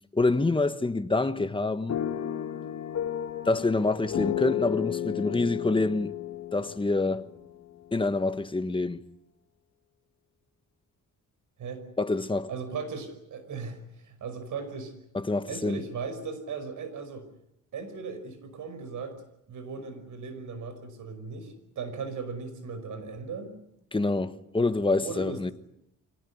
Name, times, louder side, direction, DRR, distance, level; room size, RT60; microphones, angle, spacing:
voice 1, 0.1-2.0 3.5-6.1 6.5-7.3 7.9-9.0 12.0-12.5 15.1-15.8 23.9-25.5, left 3 dB, 15° left, 1.3 m, -26 dB
sound 1, 1.9-7.9, left 10 dB, 60° left, 1.6 m, -33 dB
voice 2, 12.5-14.9 15.5-17.3 17.7-19.2 19.5-23.5 25.0-25.5, right 5 dB, 75° right, 5.4 m, -37 dB
25.0 x 18.0 x 9.5 m
cardioid pair, 90°, 31 cm